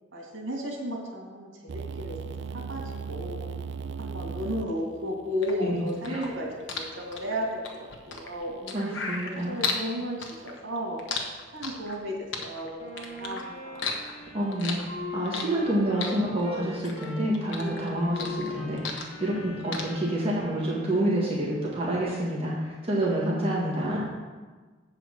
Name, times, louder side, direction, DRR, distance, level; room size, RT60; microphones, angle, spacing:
voice 1, 0.1-2.8 3.1-3.5 4.0-9.0 9.2-11.0 11.5-14.0, equal, 85° right, -1 dB, 2.3 m, -34 dB
sound 1, 1.7-7.6, right 5 dB, 65° right, 0.4 m, -39 dB
sound 2, 5.4-9.9 10.2-12.0 12.3-13.4 13.7-15.7 16.0-17.1 17.3-19.4 19.7-19.8, left 5 dB, 70° left, 1.1 m, -34 dB
voice 2, 5.6-6.3 8.7-9.6 14.0-24.0, right 1 dB, 30° right, -6 dB, 1.8 m, -28 dB
Wind instrument woodwind instrument, 12.8-21.3, left 2 dB, 40° left, 2.6 m, -40 dB
8.0 x 4.9 x 6.5 m, 1.4 s
head